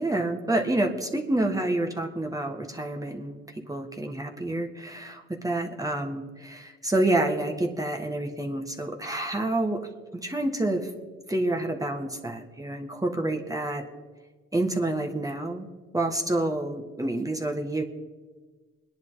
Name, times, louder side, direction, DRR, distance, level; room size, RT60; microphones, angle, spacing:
voice 1, 0.0-10.9 11.3-13.9 14.5-17.8, right 1 dB, 10° right, 2 dB, 1.7 m, -28 dB
24.5 x 10.5 x 4.1 m, 1.4 s
cardioid pair, 90°, 30 cm